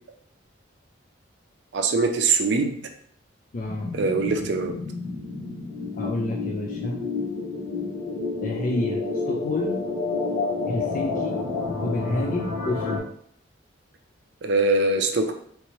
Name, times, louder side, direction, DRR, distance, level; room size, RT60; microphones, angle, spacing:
voice 1, 1.7-2.7 3.9-4.7 14.4-15.3, right 3 dB, 60° right, 5 dB, 0.4 m, -22 dB
voice 2, 3.5-3.9 5.9-7.0 8.4-9.9 10.7-11.4 11.8-13.1, left 2 dB, 40° left, 0 dB, 0.3 m, -29 dB
sound 1, 3.7-13.0, left 3 dB, 85° left, 1.0 m, -30 dB
3.2 x 2.8 x 3.0 m, 0.62 s
head